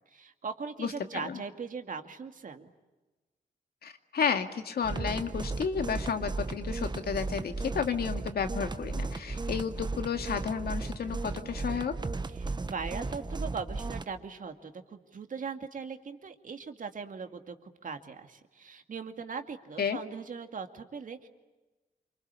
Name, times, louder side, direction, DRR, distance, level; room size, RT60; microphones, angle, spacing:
voice 1, 0.0-2.7 12.4-21.3, right 5 dB, 55° right, 6 dB, 2.3 m, -40 dB
voice 2, 0.8-1.4 3.8-12.0 19.8-20.0, left 6 dB, 80° left, 7 dB, 2.2 m, -32 dB
sound 1, 4.8-14.1, right 3 dB, 30° right, 1.1 m, -35 dB
28.0 x 25.5 x 8.4 m, 1.2 s
wide cardioid pair, 120°, 16 cm